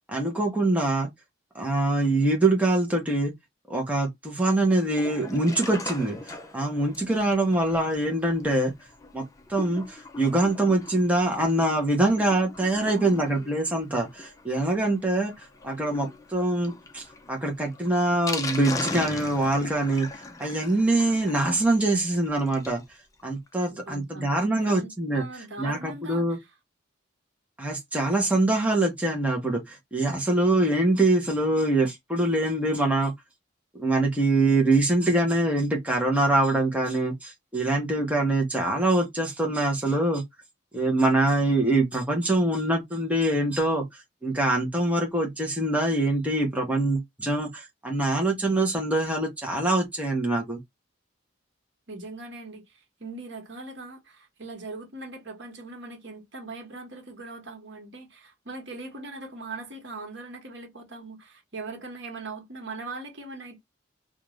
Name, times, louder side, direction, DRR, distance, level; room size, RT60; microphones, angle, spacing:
voice 1, 0.1-1.1 1.5-3.3 3.7-8.7 9.1-9.2 9.5-20.1 20.4-22.8 23.2-25.2 25.6-26.4 27.6-33.1 33.7-40.2 40.7-50.6, right 2 dB, 5° right, 0.8 m, -24 dB
Sink (filling or washing), 4.8-22.8 23.2-23.3 23.5-23.6 23.9-24.0, left 3 dB, 15° left, 0.4 m, -40 dB
voice 2, 12.7-13.5 23.7-26.5 51.9-63.6, right 3 dB, 70° right, 1.2 m, -40 dB
2.4 x 2.4 x 3.1 m
head